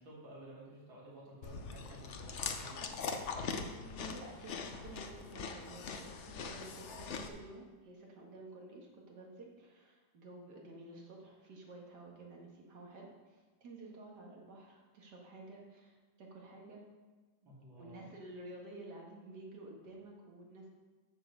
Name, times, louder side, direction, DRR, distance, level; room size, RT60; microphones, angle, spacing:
voice 1, 0.0-2.7 3.0-3.2 17.4-18.1, right 1 dB, 80° right, -6 dB, 3.3 m, -53 dB
Chewing mastication, 1.4-7.3, left 5 dB, 65° left, 0.7 m, -42 dB
voice 2, 3.8-16.8 17.7-20.7, right 2 dB, 60° right, -1 dB, 2.3 m, -52 dB
7.9 x 6.8 x 6.6 m, 1.3 s
omnidirectional pair, 2.1 m